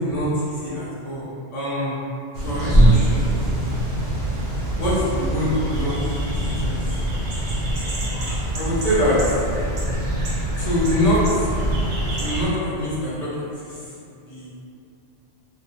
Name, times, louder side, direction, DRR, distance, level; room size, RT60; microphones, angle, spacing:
voice 1, 0.0-2.0 2.4-3.4 4.7-5.9 6.2-6.3 6.6-6.8 8.2-9.2 10.6-11.5 12.2-13.3 13.6-13.8 14.1-14.5, equal, 50° left, -9 dB, 0.4 m, -24 dB
sound 1, 2.3-12.4, right 1 dB, 65° right, 0.4 m, -23 dB
2.1 x 2.1 x 2.8 m, 2.6 s
omnidirectional pair, 1.3 m